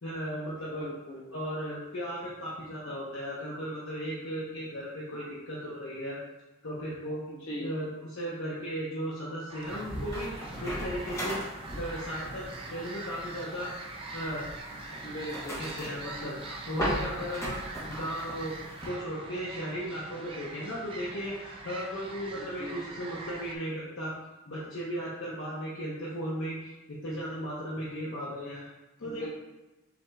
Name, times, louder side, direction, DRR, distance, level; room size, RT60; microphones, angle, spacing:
voice 1, 0.0-0.9 1.3-6.2 6.6-7.2 7.6-11.4 11.8-13.7 14.1-14.5 15.6-17.6 17.9-18.5 18.8-24.1 24.5-28.7 29.0-29.3, equal, 70° left, -7 dB, 0.8 m, -36 dB
voice 2, 0.8-1.2 7.3-7.7 15.0-15.6 22.3-22.8 29.0-29.3, equal, 90° left, -6 dB, 1.3 m, -39 dB
sound 1, 9.5-23.6, right 3 dB, 25° right, 0.4 m, -43 dB
sound 2, 9.7-18.9, equal, 15° left, 1.0 m, -38 dB
5.9 x 3.8 x 2.3 m, 1.1 s
head